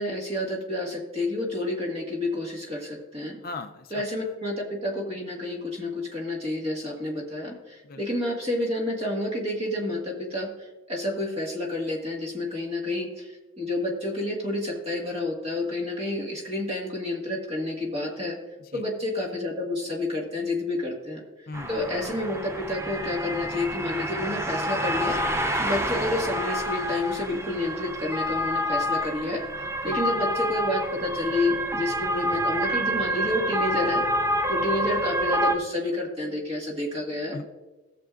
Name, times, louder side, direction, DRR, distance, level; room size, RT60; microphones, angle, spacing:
voice 1, 0.0-3.4 3.9-18.4 18.7-25.2 25.6-34.0 34.5-37.4, left 2 dB, 30° right, 0 dB, 1.7 m, -29 dB
voice 2, 3.4-4.3 7.8-8.0 18.6-18.9 21.5-21.7 25.5-25.7 29.8-29.9 34.4-34.5 37.3-37.5, left 3 dB, 45° left, 7 dB, 0.5 m, -39 dB
sound 1, 21.5-35.6, equal, 15° right, 0.5 m, -28 dB
17.0 x 7.2 x 2.5 m, 1.2 s
head